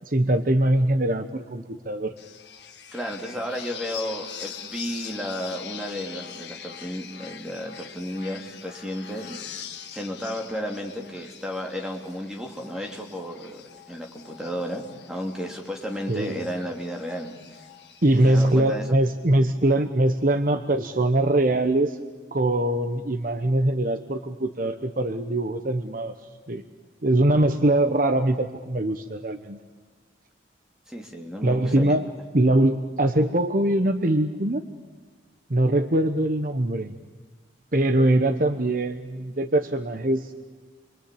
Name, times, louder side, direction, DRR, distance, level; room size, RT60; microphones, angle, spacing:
voice 1, 0.1-2.1 16.1-16.4 18.0-22.0 22.3-26.1 26.5-26.6 27.0-29.6 31.4-32.1 32.3-34.6 35.5-37.0 37.7-40.3, right 1 dB, 50° right, 8 dB, 1.1 m, -22 dB
sound 1, 2.2-18.6, left 8 dB, 75° left, 2.0 m, -43 dB
voice 2, 2.9-9.4 9.9-13.6 13.9-17.6 18.2-18.8 30.9-32.0, equal, 5° right, 0 dB, 3.1 m, -33 dB
28.0 x 23.5 x 8.6 m, 1.4 s
head